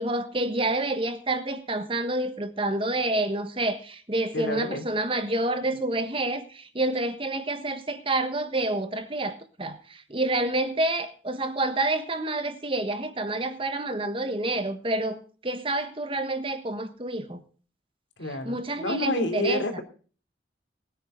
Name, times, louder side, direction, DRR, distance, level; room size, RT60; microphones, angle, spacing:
voice 1, 0.0-17.4 18.4-19.6, right 2 dB, 30° right, 1.4 m, -28 dB
voice 2, 4.3-4.8 18.2-19.8, left 1 dB, 85° left, 3.1 m, -29 dB
20.0 x 9.6 x 3.9 m
head